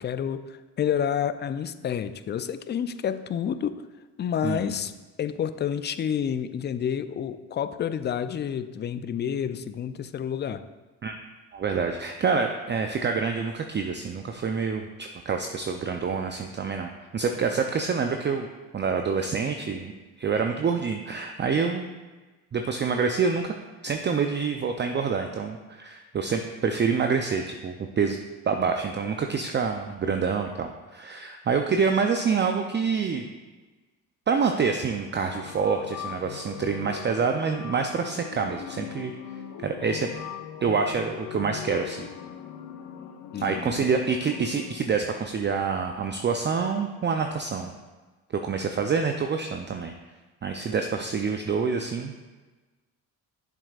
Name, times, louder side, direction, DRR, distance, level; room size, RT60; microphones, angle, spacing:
voice 1, 0.0-3.8 4.2-4.9 5.2-10.6 43.3-43.7, left 8 dB, 25° left, 12 dB, 0.4 m, -29 dB
voice 2, 11.5-18.5 18.7-19.9 20.2-21.9 22.5-23.5 23.8-28.2 28.5-33.3 34.3-39.1 39.6-40.1 40.6-42.1 43.4-47.7 48.3-49.9 50.4-52.1, right 5 dB, 25° right, 5 dB, 0.5 m, -27 dB
sound 1, 35.2-44.8, left 9 dB, 60° left, 0.8 m, -40 dB
8.1 x 7.3 x 2.4 m, 1.2 s
supercardioid pair, 65°, 41 cm